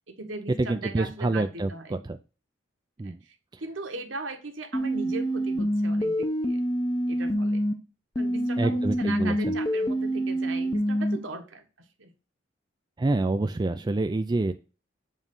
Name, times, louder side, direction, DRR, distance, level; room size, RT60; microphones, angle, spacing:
voice 1, 0.1-2.0 3.0-3.4 3.6-6.6 7.1-7.6 8.1-11.6 12.0-12.1, right 3 dB, 70° right, 5 dB, 1.3 m, -38 dB
voice 2, 0.6-2.2 3.0-3.2 3.5-3.6 8.6-9.6 13.0-14.5, right 2 dB, 20° right, 8 dB, 0.4 m, -27 dB
sound 1, 4.7-7.7 8.2-11.2, equal, 20° left, 0.7 m, -26 dB
7.3 x 3.2 x 5.3 m, 0.32 s
head